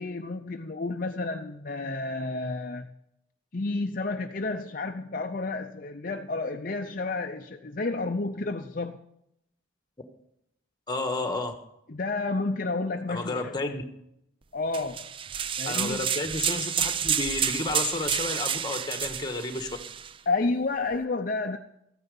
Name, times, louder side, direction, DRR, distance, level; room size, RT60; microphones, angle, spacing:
voice 1, 0.0-2.9 3.5-9.0 11.9-13.7 14.5-15.0 15.6-16.1 20.3-21.6, left 3 dB, 45° left, 5 dB, 0.6 m, -31 dB
voice 2, 10.9-11.5 13.1-13.8 15.6-19.7, left 2 dB, 20° left, 7 dB, 1.4 m, -31 dB
sound 1, 14.7-20.1, right 8 dB, 25° right, 0.4 m, -30 dB
14.0 x 9.6 x 5.4 m, 0.79 s
head